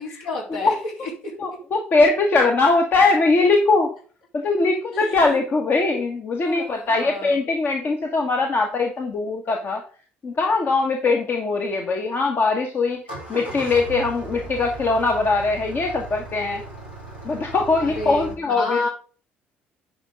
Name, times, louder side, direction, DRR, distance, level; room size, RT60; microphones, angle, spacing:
voice 1, 0.0-1.3 4.9-5.4 6.4-7.4 17.8-18.9, left 2 dB, 65° left, -3 dB, 4.3 m, -31 dB
voice 2, 1.4-3.9 4.3-9.8 10.2-13.0 13.3-16.6 17.2-18.9, left 3 dB, 40° left, 2 dB, 1.6 m, -21 dB
Engine starting, 12.9-18.4, right 2 dB, 85° left, 3.3 m, -37 dB
10.5 x 5.6 x 3.8 m, 0.40 s
figure-of-eight pair, 50°, 6 cm